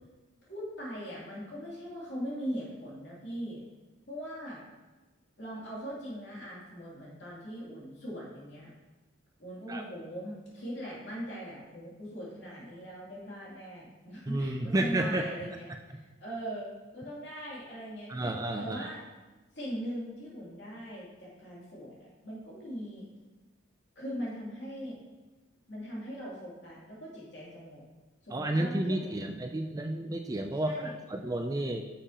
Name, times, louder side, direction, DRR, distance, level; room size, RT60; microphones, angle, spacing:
voice 1, 0.4-3.6 4.1-4.6 5.4-8.7 9.4-19.0 19.5-23.1 23.9-25.0 25.7-27.8 28.2-29.3 30.6-30.9, equal, 55° left, -6 dB, 2.9 m, -40 dB
voice 2, 14.3-15.3 18.1-18.9 28.3-31.9, right 1 dB, 15° right, 5 dB, 0.3 m, -31 dB
10.0 x 6.7 x 2.9 m, 1.2 s
head